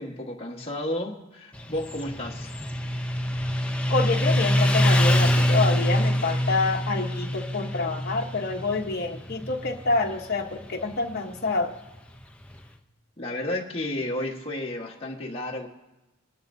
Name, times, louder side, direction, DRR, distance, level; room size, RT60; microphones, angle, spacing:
voice 1, 0.0-2.5 13.2-15.7, left 1 dB, 30° left, -2 dB, 1.4 m, -32 dB
Motorcycle, 1.5-12.7, equal, 5° left, 0.7 m, -25 dB
voice 2, 3.9-11.7, left 3 dB, 50° left, 2 dB, 1.1 m, -27 dB
23.5 x 11.0 x 2.7 m, 1.0 s
head